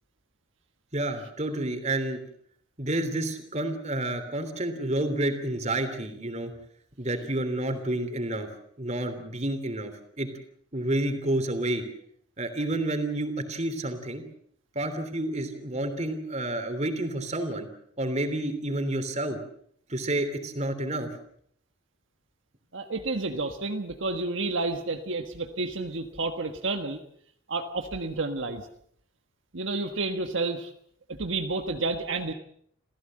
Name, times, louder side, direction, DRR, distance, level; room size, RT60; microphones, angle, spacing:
voice 1, 0.9-2.2 2.8-6.5 7.0-8.5 8.8-10.3 10.7-11.8 12.4-14.2 14.7-17.7 18.0-19.4 19.9-21.2, right 1 dB, 35° right, 7 dB, 3.2 m, -29 dB
voice 2, 22.7-27.0 27.5-28.7 29.5-30.7 31.1-32.3, right 3 dB, 70° right, 6 dB, 1.5 m, -30 dB
28.0 x 16.0 x 7.6 m, 0.68 s
head